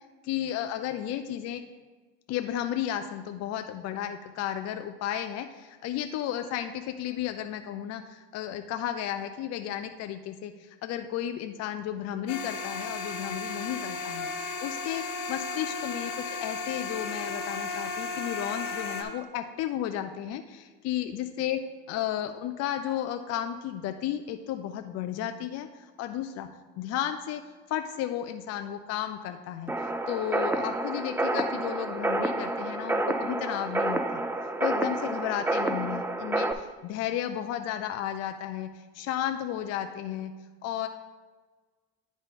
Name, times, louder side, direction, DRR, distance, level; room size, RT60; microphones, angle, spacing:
voice 1, 0.2-1.6 2.3-14.3 14.6-21.6 21.9-26.5 26.8-27.4 27.7-29.7 30.1-34.2 34.6-40.3 40.6-40.9, left 11 dB, 55° left, 7 dB, 0.5 m, -33 dB
sound 1, 12.3-19.0, left 4 dB, 80° left, 1.1 m, -34 dB
sound 2, 29.7-36.5, right 2 dB, 10° right, 0.3 m, -29 dB
10.0 x 3.6 x 4.1 m, 1.3 s
supercardioid pair, 95°, 30 cm